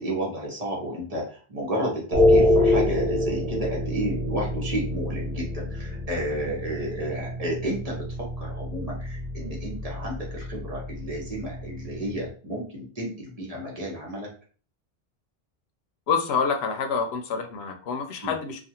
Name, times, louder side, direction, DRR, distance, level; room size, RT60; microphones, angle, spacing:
voice 1, 0.0-14.3 18.2-18.3, right 1 dB, 40° right, -3 dB, 0.9 m, -32 dB
sound 1, 2.1-12.3, left 1 dB, 75° right, 0.8 m, -26 dB
voice 2, 16.1-18.6, left 5 dB, 90° left, 6 dB, 0.8 m, -27 dB
2.4 x 2.4 x 2.8 m, 0.40 s
omnidirectional pair, 1.0 m